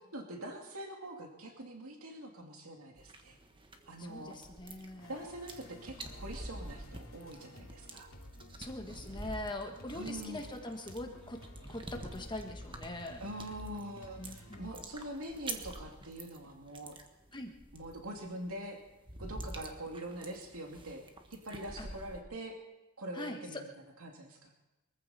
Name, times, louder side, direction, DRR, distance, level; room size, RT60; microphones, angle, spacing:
voice 1, 0.0-3.4 3.9-4.4 5.1-8.1 9.9-10.4 13.2-17.0 17.7-18.8 19.2-21.0 21.3-22.6 23.0-23.6 24.0-24.5, right 1 dB, 85° right, 1 dB, 2.5 m, -44 dB
sound 1, 3.0-22.2, right 2 dB, 25° right, 1.5 m, -48 dB
voice 2, 4.0-5.2 8.6-11.4 11.7-13.2 14.2-14.7 17.3-17.5 21.8-21.9 23.1-23.6, left 1 dB, 20° left, 4 dB, 1.4 m, -42 dB
sound 2, 5.0-14.9, left 1 dB, 75° left, 2.8 m, -53 dB
23.0 x 14.5 x 4.2 m, 1.0 s
head